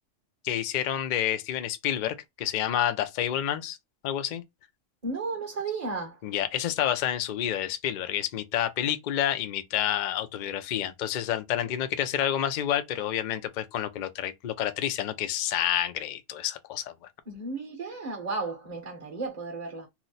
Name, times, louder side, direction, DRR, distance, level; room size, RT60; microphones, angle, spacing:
voice 1, 0.4-3.8 4.0-4.4 6.2-16.9, left 11 dB, 65° left, 0.4 m, -29 dB
voice 2, 5.0-6.2 17.3-19.9, right 3 dB, 35° right, 0.8 m, -34 dB
2.9 x 2.0 x 3.9 m
omnidirectional pair, 1.3 m